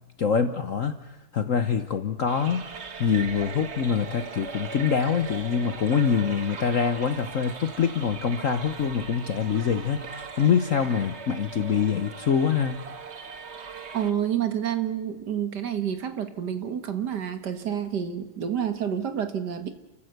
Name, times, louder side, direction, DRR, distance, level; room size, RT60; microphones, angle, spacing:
voice 1, 0.2-1.0 1.3-12.8, left 7 dB, 50° left, 10 dB, 1.1 m, -25 dB
sound 1, 2.3-14.1, right 5 dB, 40° right, 1.3 m, -39 dB
voice 2, 13.6-19.7, right 9 dB, 55° right, 9 dB, 1.9 m, -29 dB
30.0 x 14.5 x 8.0 m, 1.0 s
omnidirectional pair, 2.2 m